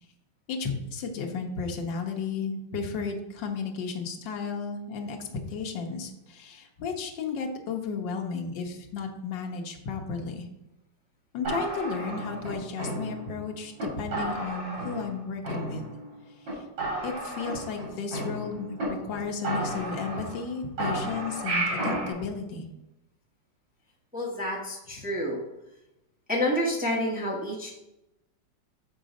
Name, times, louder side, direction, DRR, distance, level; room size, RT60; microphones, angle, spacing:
voice 1, 0.5-10.5 11.3-15.8 17.0-22.7, left 5 dB, 80° left, 2 dB, 1.6 m, -33 dB
sound 1, 11.4-13.4 13.8-13.9 14.1-15.2 15.4-16.2 16.4-16.5 16.8-18.8 19.1-19.2 19.4-20.5 20.8-22.1, right 2 dB, 80° right, 3.6 m, -32 dB
voice 2, 24.1-25.4 26.3-27.7, left 1 dB, 5° right, -3 dB, 1.0 m, -28 dB
7.1 x 3.8 x 5.1 m, 0.91 s
omnidirectional pair, 2.0 m